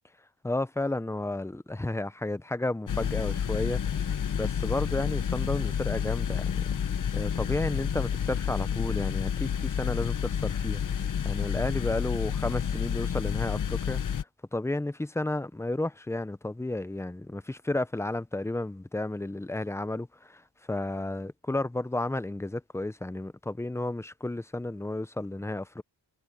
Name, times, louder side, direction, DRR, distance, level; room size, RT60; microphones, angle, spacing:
voice 1, 0.4-6.5 7.1-14.2 14.5-20.4 20.7-25.8, left 2 dB, 5° left, 0.5 m, -32 dB
gastherme normalized, 2.9-14.2, left 8 dB, 45° left, 0.7 m, -30 dB
wide cardioid pair, 140°, 43 cm